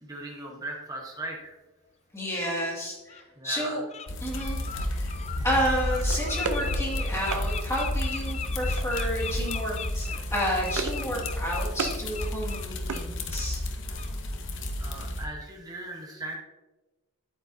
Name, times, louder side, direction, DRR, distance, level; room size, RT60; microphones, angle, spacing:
voice 1, 0.0-1.5 3.4-3.8 14.8-16.4, right 2 dB, 15° right, -1 dB, 1.1 m, -38 dB
voice 2, 2.1-3.8 4.2-4.6 4.9-5.1 5.4-13.6, equal, 10° left, -3 dB, 2.2 m, -31 dB
Bird, 2.3-2.4 3.1-3.2 3.7-4.1 4.3-13.1 13.4-13.6 13.9-14.1, left 7 dB, 30° left, 0.4 m, -39 dB
sound 1, 4.1-15.2, left 1 dB, 55° left, 1.0 m, -31 dB
sound 2, 6.1-7.5 8.8-9.2 9.5-9.7 10.0-11.1 11.4-12.0 12.4-13.6, right 4 dB, 85° right, 0.8 m, -36 dB
8.8 x 8.8 x 2.7 m, 1.2 s
head